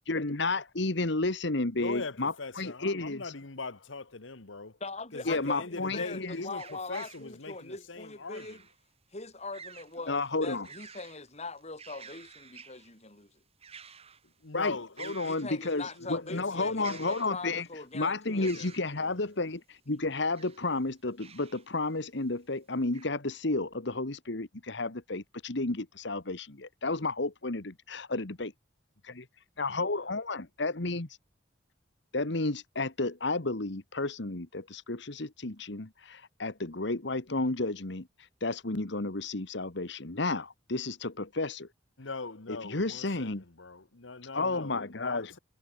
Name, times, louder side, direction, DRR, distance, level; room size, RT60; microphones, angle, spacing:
voice 1, 0.1-3.3 5.2-6.4 10.1-10.7 14.5-14.7 15.0-17.7 17.9-28.5 29.0-29.2 29.6-31.1 32.1-38.1 38.4-41.7 42.5-43.4 44.3-45.4, left 2 dB, 65° left, 1.6 m, -32 dB
voice 2, 1.8-4.8 5.1-8.6 14.4-15.2 15.7-17.1 18.3-18.7 19.0-19.2 29.7-29.8 42.0-45.4, left 3 dB, 85° left, 1.6 m, -41 dB
voice 3, 4.8-8.6 9.1-13.3 15.2-18.5, left 3 dB, 35° left, 5.7 m, -42 dB
sound 1, 6.6-7.3 8.3-8.8 9.5-10.0 10.4-11.2 11.6-12.9 13.6-14.3 14.6-14.7 15.0-16.0 16.8-17.7 18.4-18.9 20.1-20.7 21.2-21.7 22.2-22.3 22.9-23.1, right 6 dB, 30° right, 2.7 m, -49 dB
head